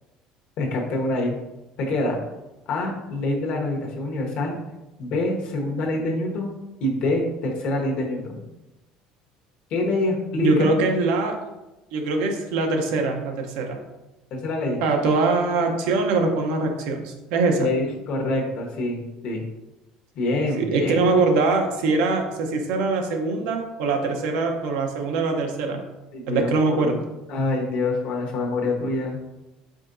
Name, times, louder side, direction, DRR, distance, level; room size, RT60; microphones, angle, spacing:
voice 1, 0.6-1.4 1.8-2.2 2.7-4.6 5.0-6.5 6.8-8.4 9.7-10.8 14.3-14.8 17.6-19.4 20.1-21.1 26.1-26.9 27.3-29.2, left 2 dB, 60° left, 0 dB, 1.1 m, -26 dB
voice 2, 10.4-11.4 11.9-13.8 14.8-17.7 20.6-25.8 26.3-27.0, right 3 dB, 80° right, 3 dB, 0.8 m, -23 dB
5.1 x 3.6 x 2.6 m, 0.99 s
cardioid pair, 125°, 2 cm